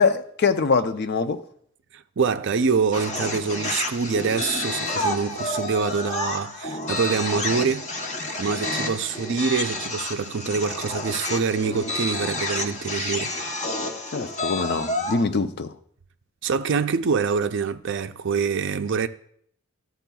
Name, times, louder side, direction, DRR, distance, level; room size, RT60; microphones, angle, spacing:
voice 1, 0.0-1.4 14.1-15.7, left 4 dB, 50° left, 0.5 m, -23 dB
voice 2, 1.9-8.1 8.4-13.3 16.4-19.1, right 5 dB, 55° right, 0.5 m, -25 dB
sound 1, 2.9-15.2, left 2 dB, 35° left, 0.9 m, -29 dB
13.5 x 7.9 x 2.3 m
head